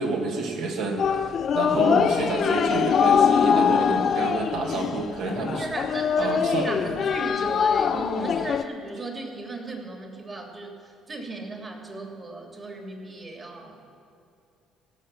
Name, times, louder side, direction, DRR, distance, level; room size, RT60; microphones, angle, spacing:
voice 1, 0.0-5.7 6.2-6.7, right 3 dB, 65° right, 1 dB, 1.9 m, -29 dB
sound 1, 1.0-8.6, left 7 dB, 50° left, 0.5 m, -23 dB
voice 2, 5.4-10.7 11.1-13.7, right 2 dB, 30° right, 2 dB, 2.9 m, -36 dB
17.5 x 6.5 x 7.0 m, 2.6 s
hypercardioid pair, 50°, 0 cm